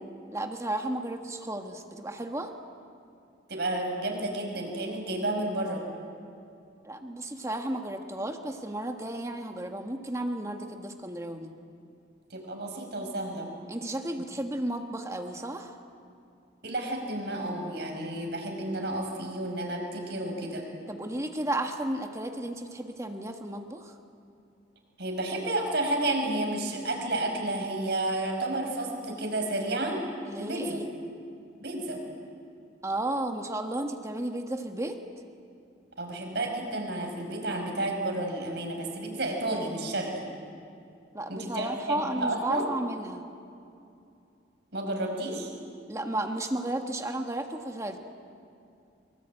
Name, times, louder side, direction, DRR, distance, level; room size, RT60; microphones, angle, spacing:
voice 1, 0.3-2.5 6.8-11.5 13.7-15.8 20.9-23.9 30.3-30.9 32.8-35.0 41.1-43.2 45.9-48.0, right 1 dB, 15° right, 5 dB, 1.4 m, -33 dB
voice 2, 3.5-5.8 12.3-13.5 16.6-20.6 25.0-30.0 30.4-30.8 31.6-32.0 36.0-40.2 41.3-42.7 44.7-45.5, right 1 dB, 60° right, 2 dB, 5.4 m, -31 dB
23.5 x 23.5 x 9.0 m, 2.5 s
head